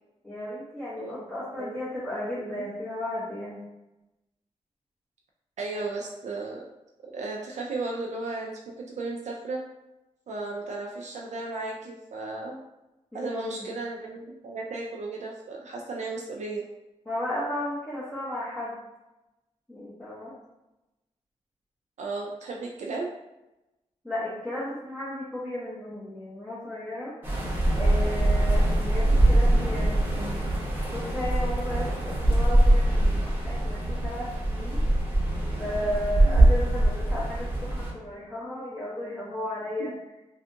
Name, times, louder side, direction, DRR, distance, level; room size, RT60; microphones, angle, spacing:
voice 1, 0.2-3.6 13.1-13.7 17.1-18.8 19.7-20.3 24.0-27.1 27.7-30.5 30.9-34.9 35.6-39.9, left 1 dB, 5° left, -9 dB, 1.1 m, -34 dB
voice 2, 2.1-2.6 5.6-6.7 7.0-9.6 10.3-12.6 13.1-16.6 22.0-23.1 36.2-36.4 39.8-39.9, right 3 dB, 70° right, -1 dB, 0.4 m, -35 dB
sound 1, 27.2-37.9, right 1 dB, 15° right, 1.1 m, -23 dB
3.4 x 2.4 x 2.7 m, 0.98 s
cardioid pair, 65°, 13 cm